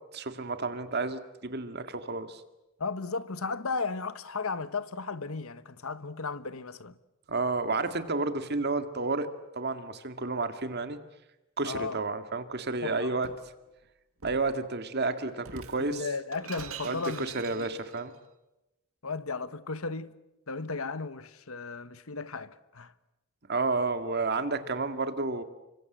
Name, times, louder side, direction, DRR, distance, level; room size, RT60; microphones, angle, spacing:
voice 1, 0.1-2.4 7.3-11.0 11.6-13.3 14.2-16.1 16.8-18.1 23.5-25.4, right 3 dB, 50° right, 2.0 m, -31 dB
voice 2, 2.8-7.0 11.6-12.0 12.8-13.1 15.8-17.7 19.0-20.2 20.5-22.9, left 4 dB, 75° left, 1.3 m, -35 dB
Shatter, 12.6-13.5 14.2-14.5 15.4-18.0, right 6 dB, 75° right, 1.9 m, -45 dB
30.0 x 25.0 x 8.0 m
head